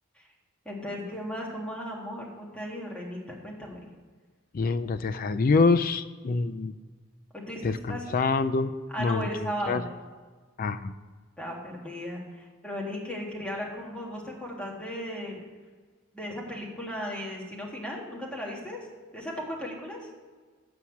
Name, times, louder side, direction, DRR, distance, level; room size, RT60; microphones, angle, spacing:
voice 1, 0.6-3.8 7.3-8.2 8.9-9.9 11.4-15.4 16.1-18.9 19.1-20.0, equal, 5° left, -3 dB, 1.7 m, -36 dB
voice 2, 4.5-6.7 7.6-8.7 9.0-9.3 9.7-9.8 10.6-10.9, left 4 dB, 45° left, 12 dB, 0.4 m, -25 dB
7.8 x 5.8 x 7.2 m, 1.4 s
head